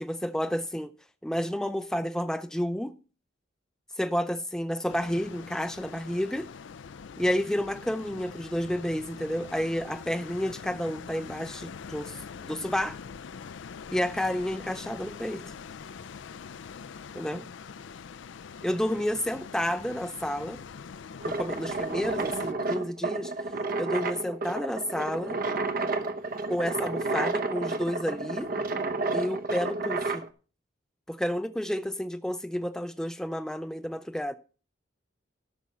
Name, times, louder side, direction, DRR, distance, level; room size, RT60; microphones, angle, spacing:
voice 1, 0.0-0.9 1.2-2.9 4.0-6.5 7.2-13.0 13.9-15.4 17.1-17.4 18.6-20.6 21.2-23.3 23.8-25.4 26.5-28.5 29.1-30.3 31.1-34.4, equal, 5° left, 0.4 m, -30 dB
sound 1, 4.9-22.5, left 6 dB, 70° left, 0.4 m, -44 dB
sound 2, 21.2-30.3, right 3 dB, 50° right, 0.8 m, -31 dB
12.5 x 6.1 x 5.4 m
head